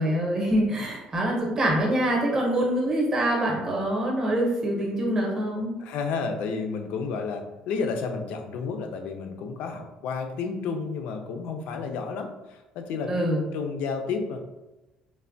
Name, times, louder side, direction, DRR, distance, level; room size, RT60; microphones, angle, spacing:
voice 1, 0.0-5.7 13.1-13.4, right 1 dB, 20° right, -2 dB, 0.7 m, -25 dB
voice 2, 5.8-13.3 13.5-14.4, left 5 dB, 70° left, 5 dB, 0.4 m, -31 dB
3.2 x 2.1 x 2.6 m, 1.0 s
cardioid pair, 165°, 2 cm